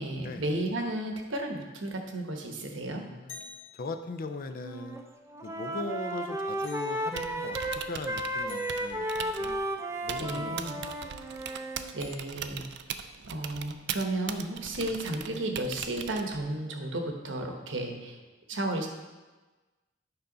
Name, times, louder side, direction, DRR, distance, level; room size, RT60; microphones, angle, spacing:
voice 1, 0.0-3.0 10.2-10.8 11.9-12.7 13.3-18.2 18.5-18.9, right 1 dB, 85° right, 3 dB, 1.1 m, -33 dB
voice 2, 2.9-3.4 3.7-5.0 5.4-9.6 10.0-11.1 14.8-15.0 17.8-18.0, left 3 dB, 50° left, 8 dB, 0.5 m, -40 dB
sound 1, 3.3-4.0 6.6-7.2 8.5-9.0 12.0-12.6, left 4 dB, 80° left, 1.3 m, -48 dB
Wind instrument woodwind instrument, 4.6-5.0 5.3-11.8, right 1 dB, 15° right, 0.5 m, -34 dB
Typing, 7.0-16.6, right 8 dB, 65° right, 0.4 m, -41 dB
9.0 x 5.5 x 3.9 m, 1.2 s
head